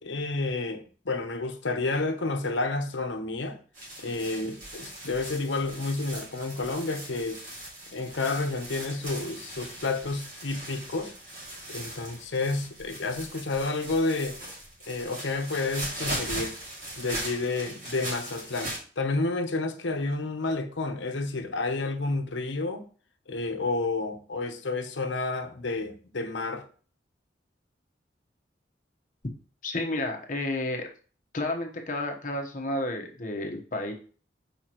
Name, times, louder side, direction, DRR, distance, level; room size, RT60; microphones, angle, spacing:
voice 1, 0.0-3.6 4.0-7.4 7.9-11.1 11.7-14.4 14.9-16.5 17.0-22.8 23.3-26.6, left 3 dB, 85° left, 0.9 m, -30 dB
sound 1, 3.7-18.8, right 1 dB, 45° right, 2.7 m, -39 dB
voice 2, 29.6-30.9 31.3-33.9, left 1 dB, 45° left, 1.1 m, -31 dB
6.9 x 5.1 x 3.0 m
head